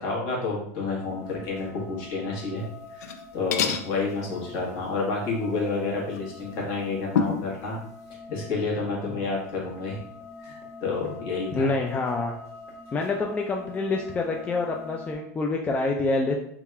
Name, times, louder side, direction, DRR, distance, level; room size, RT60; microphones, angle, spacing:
voice 1, 0.0-7.8 8.3-10.0 10.4-11.7, left 3 dB, 55° left, -3 dB, 1.4 m, -30 dB
sound 1, 1.0-15.1, left 3 dB, 35° left, 1.4 m, -45 dB
sound 2, 2.9-3.2 3.5-3.9 6.1-6.2 7.1-7.5, left 6 dB, 90° left, 0.4 m, -26 dB
voice 2, 11.5-12.3 12.9-16.4, left 3 dB, 15° left, 1 dB, 0.3 m, -26 dB
3.4 x 2.3 x 3.3 m, 0.70 s
supercardioid pair, 125°, 8 cm